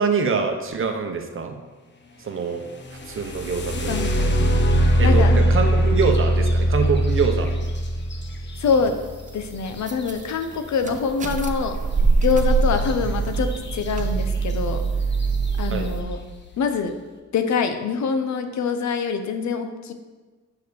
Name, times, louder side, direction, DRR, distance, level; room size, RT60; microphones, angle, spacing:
voice 1, 0.0-1.6 2.2-2.6 3.1-3.9 5.0-7.5 15.7-15.9, right 5 dB, 45° right, 5 dB, 0.9 m, -24 dB
sound 1, 2.9-10.7 12.8-12.9 13.3-13.9 14.5-14.6 15.1-15.5, equal, 40° left, 1.0 m, -21 dB
voice 2, 3.9-4.3 5.0-5.4 8.6-8.9 9.3-11.8 12.2-14.8 15.6-16.2 16.6-16.9 17.3-19.9, left 5 dB, 70° left, 7 dB, 0.8 m, -24 dB
sound 2, 8.8-9.0 9.9-10.1 10.6-16.0, right 4 dB, 25° right, 0.5 m, -23 dB
6.7 x 4.8 x 6.9 m, 1.3 s
wide cardioid pair, 145°, 29 cm